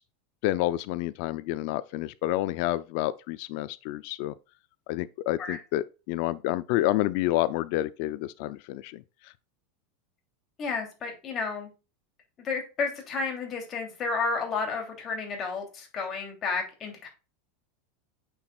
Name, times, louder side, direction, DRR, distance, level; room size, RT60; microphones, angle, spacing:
voice 1, 0.4-4.3 4.9-9.0, left 15 dB, 60° left, 0.5 m, -29 dB
voice 2, 10.6-11.7 12.4-17.1, left 4 dB, 30° left, 3.0 m, -31 dB
9.0 x 6.1 x 2.4 m
supercardioid pair, 140°, 0 cm